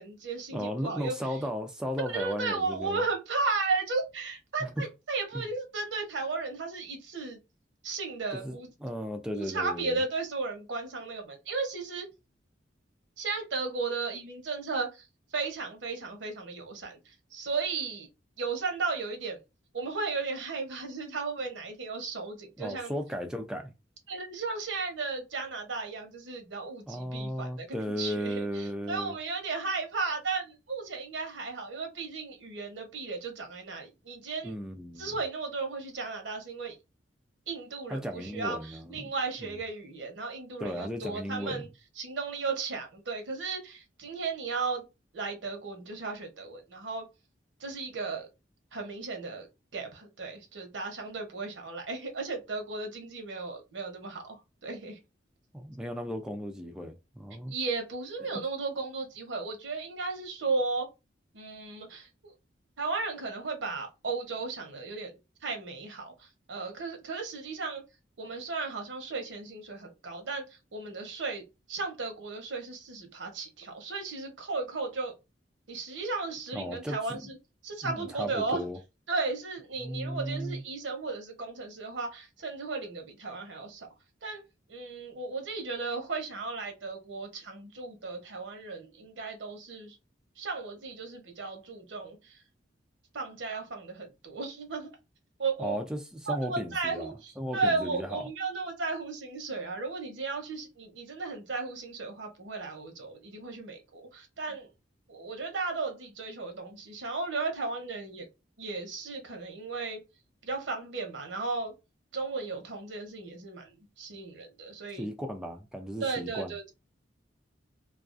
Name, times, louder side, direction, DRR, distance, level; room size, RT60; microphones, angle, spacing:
voice 1, 0.0-1.4 2.1-7.4 7.8-8.7 9.3-12.1 13.2-15.1 15.3-18.1 18.4-19.4 19.7-23.0 24.1-34.5 35.0-36.7 37.5-41.7 42.0-44.9 45.1-47.1 47.6-48.3 48.7-49.5 49.7-55.0 57.5-60.9 61.3-62.3 62.8-67.8 68.2-70.4 70.7-75.1 75.7-77.4 77.6-78.7 79.1-83.9 84.2-84.4 84.7-90.0 90.4-92.4 93.1-94.9 95.4-95.8 96.3-104.7 105.1-108.3 108.6-110.0 110.4-111.7 112.1-115.1 116.0-116.7, right 4 dB, 75° right, 0.8 m, -35 dB
voice 2, 0.5-3.0 4.6-4.7 5.3-5.5 8.3-10.0 22.6-23.7 26.9-29.2 34.4-35.1 37.9-39.1 39.4-39.5 40.6-41.6 55.5-57.5 58.2-58.4 76.5-77.3 77.8-78.8 79.8-80.6 95.6-98.2 114.9-116.5, equal, 5° right, 0.3 m, -35 dB
2.4 x 2.3 x 2.4 m
head